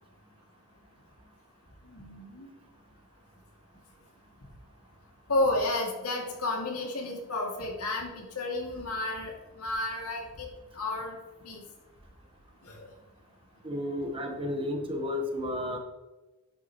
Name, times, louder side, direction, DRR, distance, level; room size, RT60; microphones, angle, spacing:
voice 1, 1.8-2.5 5.3-10.5 10.7-11.2 11.4-11.6 12.6-12.9, left 2 dB, 90° left, -1 dB, 2.8 m, -32 dB
voice 2, 13.6-15.8, left 1 dB, 25° right, 2 dB, 1.4 m, -32 dB
11.0 x 9.2 x 3.2 m, 1.1 s
head